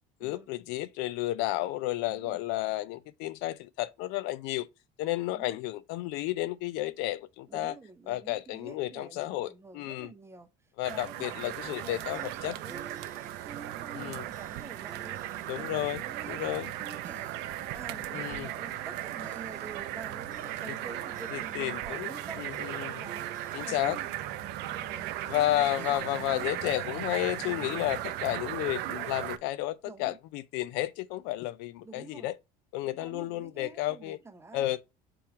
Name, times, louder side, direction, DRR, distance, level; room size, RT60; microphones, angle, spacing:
voice 1, 0.2-4.7 5.0-7.7 8.1-9.5 9.7-10.1 10.8-12.5 14.0-14.2 15.5-16.0 16.3-16.7 18.1-18.5 21.3-23.0 23.5-24.0 25.3-32.3 32.7-34.2 34.5-34.8, left 15 dB, 75° left, 0.4 m, -32 dB
voice 2, 2.1-2.4 5.3-5.6 7.5-13.1 13.4-15.2 15.5-17.3 17.7-22.4 22.9-23.3 23.6-24.2 24.8-27.0 29.8-30.2 31.8-32.3 32.8-34.8, right 4 dB, 15° right, 0.7 m, -48 dB
sound 1, 10.8-29.4, right 14 dB, 65° right, 0.4 m, -37 dB
sound 2, 11.9-28.8, right 6 dB, 40° right, 1.1 m, -49 dB
3.4 x 3.0 x 4.4 m
supercardioid pair, 85°, 18 cm